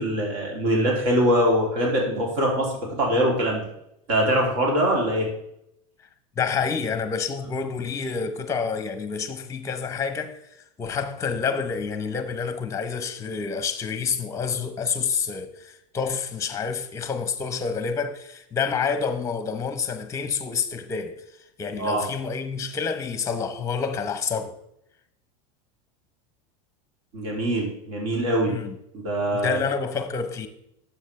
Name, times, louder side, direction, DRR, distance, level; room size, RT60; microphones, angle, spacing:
voice 1, 0.0-2.7 3.0-3.6 4.1-5.3 21.8-22.0 27.1-28.6 28.9-29.6, equal, 65° right, 2.8 m, -23 dB
voice 2, 6.4-10.4 10.8-21.2 21.6-24.5 28.5-28.8 29.3-30.5, left 5 dB, 15° left, 0.8 m, -28 dB
9.9 x 7.2 x 3.2 m
supercardioid pair, 130°, 18 cm